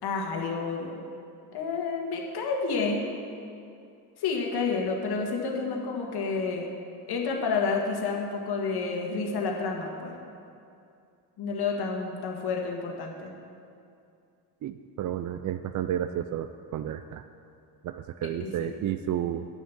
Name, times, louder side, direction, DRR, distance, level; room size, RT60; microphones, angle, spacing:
voice 1, 0.0-1.0 1.5-3.1 4.2-6.7 7.1-10.1 11.4-13.3 18.4-18.7, left 4 dB, 65° left, 0 dB, 1.8 m, -30 dB
voice 2, 14.6-17.2 17.8-19.5, right 11 dB, 45° right, 10 dB, 0.4 m, -32 dB
9.3 x 7.0 x 7.1 m, 2.5 s
cardioid pair, 90°, 42 cm